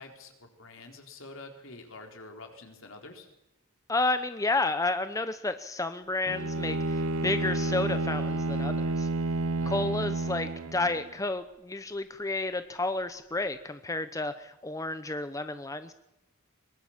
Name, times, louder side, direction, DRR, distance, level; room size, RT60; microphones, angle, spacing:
voice 1, 0.0-3.3 9.6-9.9, left 2 dB, 65° left, 4 dB, 4.1 m, -47 dB
voice 2, 3.9-9.1 9.7-15.9, left 2 dB, 15° left, 11 dB, 0.8 m, -31 dB
Bowed string instrument, 6.3-11.1, right 2 dB, 75° right, 1.0 m, -30 dB
23.0 x 22.5 x 7.4 m, 0.91 s
head